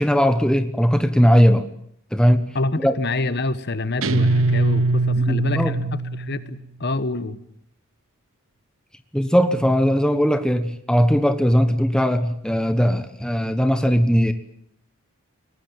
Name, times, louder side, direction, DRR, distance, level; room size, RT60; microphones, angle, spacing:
voice 1, 0.0-1.7 2.1-2.4 2.8-2.9 5.3-5.8 9.1-14.3, equal, 5° left, 8 dB, 1.2 m, -19 dB
voice 2, 2.5-7.4, left 2 dB, 45° left, 13 dB, 1.2 m, -27 dB
Guitar, 4.0-6.6, right 2 dB, 65° right, 1.1 m, -21 dB
22.0 x 19.5 x 8.9 m, 0.68 s
head